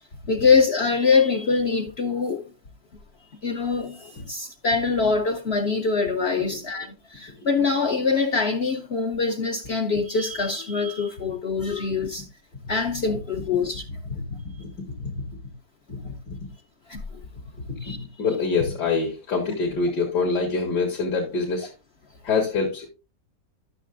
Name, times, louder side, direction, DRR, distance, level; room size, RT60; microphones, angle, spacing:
voice 1, 0.3-2.5 3.4-12.3 12.7-13.8 16.9-17.2 17.8-18.0, left 4 dB, 55° left, 0.7 m, -24 dB
voice 2, 6.3-6.6 14.0-15.3 15.9-16.4 17.7-21.7 22.2-22.9, left 4 dB, 80° left, 2.5 m, -26 dB
12.5 x 6.7 x 2.5 m
omnidirectional pair, 1.8 m